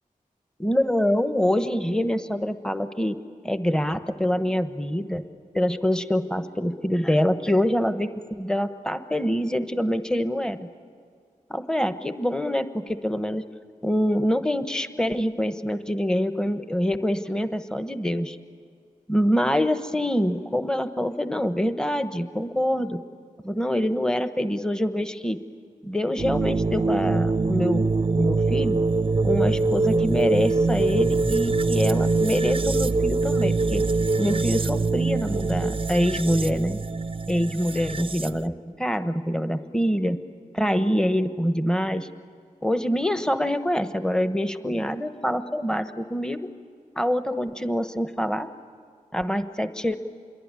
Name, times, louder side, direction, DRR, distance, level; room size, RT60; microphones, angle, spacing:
voice 1, 0.6-3.2 3.4-5.3 5.5-10.6 11.5-13.5 13.8-18.4 19.1-23.0 23.4-25.4 25.8-27.9 28.2-28.8 29.2-33.8 34.2-36.8 37.3-40.2 40.5-42.1 42.6-46.5 47.0-48.5 49.1-50.0, equal, 5° left, 9 dB, 1.2 m, -25 dB
sound 1, 26.2-38.5, right 3 dB, 40° right, 0.6 m, -24 dB
sound 2, 29.0-33.1, left 1 dB, 40° left, 7.3 m, -34 dB
27.0 x 22.5 x 9.8 m, 2.2 s
wide cardioid pair, 60°, 14 cm